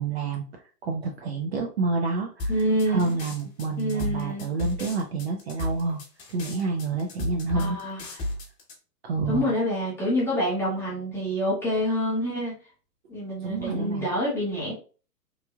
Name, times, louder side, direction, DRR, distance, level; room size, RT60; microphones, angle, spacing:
voice 1, 0.0-2.5 2.9-6.0 6.3-7.8 9.0-9.5 13.4-14.1, right 4 dB, 40° right, 2 dB, 0.6 m, -28 dB
sound 1, 2.4-8.7, left 1 dB, 30° left, 1.1 m, -33 dB
voice 2, 2.5-3.2 3.8-4.5 7.5-8.0 9.3-12.5 13.1-14.7, equal, 5° left, -7 dB, 0.7 m, -27 dB
3.1 x 2.5 x 2.3 m, 0.36 s
figure-of-eight pair, 120°, 49 cm